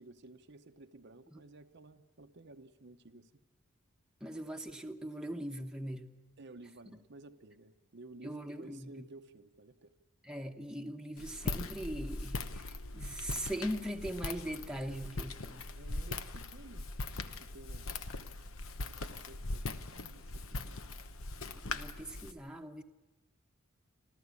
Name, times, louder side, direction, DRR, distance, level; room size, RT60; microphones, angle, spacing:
voice 1, 0.0-3.3 6.4-9.9 15.8-18.2 19.3-20.8, right 2 dB, 55° right, 7 dB, 0.8 m, -54 dB
voice 2, 4.2-6.1 8.2-9.0 10.2-15.7 21.6-22.8, right 1 dB, 5° right, 3 dB, 1.1 m, -40 dB
Walk footsteps, 11.2-22.3, left 2 dB, 75° left, 1.0 m, -40 dB
29.0 x 13.5 x 8.3 m, 1.2 s
head